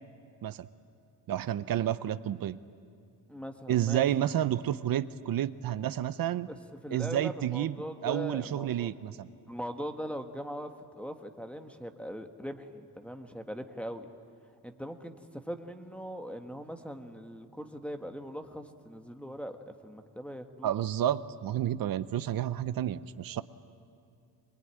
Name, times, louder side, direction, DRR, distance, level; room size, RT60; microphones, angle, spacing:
voice 1, 1.3-2.6 3.7-6.5 6.9-7.8 8.0-9.3 20.6-23.4, right 11 dB, 60° right, 14 dB, 0.7 m, -30 dB
voice 2, 3.3-4.0 6.5-6.6 6.8-8.9 9.5-14.1 14.6-19.6 19.8-20.7, equal, 5° left, 4 dB, 1.4 m, -40 dB
22.5 x 21.5 x 9.6 m, 2.5 s
cardioid pair, 105°, 40 cm